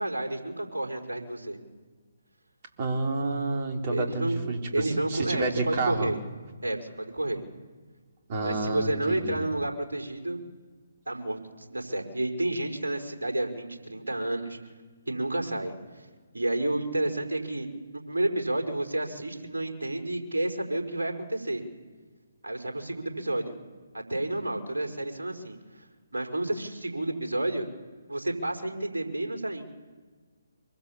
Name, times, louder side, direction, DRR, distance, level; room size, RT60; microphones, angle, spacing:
voice 1, 0.0-1.6 3.9-6.2 6.6-7.4 8.4-10.4 11.1-14.6 15.1-16.0 16.3-21.6 22.4-23.6 23.9-25.6 26.1-27.7 28.1-29.6, right 1 dB, 70° right, 2 dB, 5.2 m, -30 dB
voice 2, 2.8-6.1 8.3-9.5, right 3 dB, 35° right, 1 dB, 4.0 m, -30 dB
25.5 x 24.0 x 7.3 m, 1.5 s
figure-of-eight pair, 140°, 0 cm